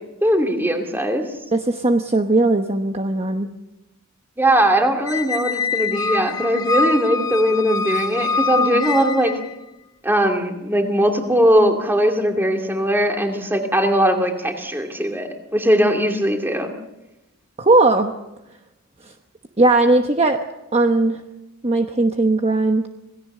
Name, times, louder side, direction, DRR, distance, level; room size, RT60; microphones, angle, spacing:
voice 1, 0.2-1.2 4.4-9.3 10.0-16.7, equal, 10° right, 3 dB, 2.5 m, -19 dB
voice 2, 1.5-3.5 17.6-18.1 19.6-20.4 20.7-21.2 21.6-22.9, right 2 dB, 25° right, 5 dB, 1.0 m, -18 dB
Squeak, 5.1-9.5, left 4 dB, 15° left, 0.7 m, -24 dB
27.0 x 17.5 x 6.7 m, 0.94 s
head